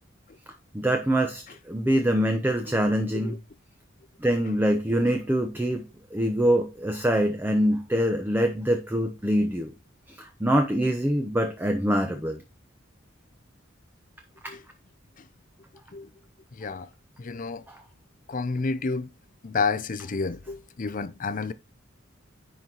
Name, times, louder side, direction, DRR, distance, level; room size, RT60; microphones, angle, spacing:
voice 1, 0.7-3.4 4.2-5.8 6.1-9.7 10.1-12.4 14.4-14.5 17.7-17.8, equal, 10° right, 0.8 m, -24 dB
voice 2, 17.2-17.6 18.3-19.1 19.4-21.5, left 4 dB, 40° left, 0.6 m, -30 dB
10.5 x 4.5 x 3.9 m
head